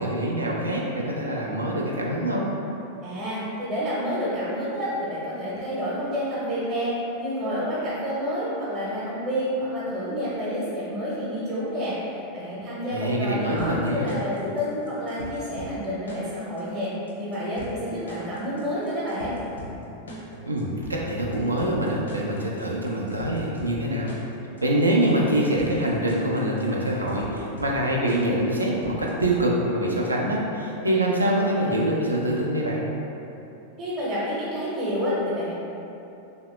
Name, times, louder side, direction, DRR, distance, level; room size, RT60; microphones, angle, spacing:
voice 1, 0.0-2.4 12.9-14.1 20.5-24.1 24.6-32.8, right 1 dB, 80° right, -3 dB, 0.5 m, -25 dB
voice 2, 3.0-6.9 7.2-16.9 17.2-19.4 33.8-35.5, equal, 30° right, -9 dB, 0.8 m, -29 dB
sound 1, 13.6-29.6, left 1 dB, 75° left, 0.6 m, -42 dB
3.1 x 2.7 x 3.0 m, 2.9 s
figure-of-eight pair, 90°, 0 cm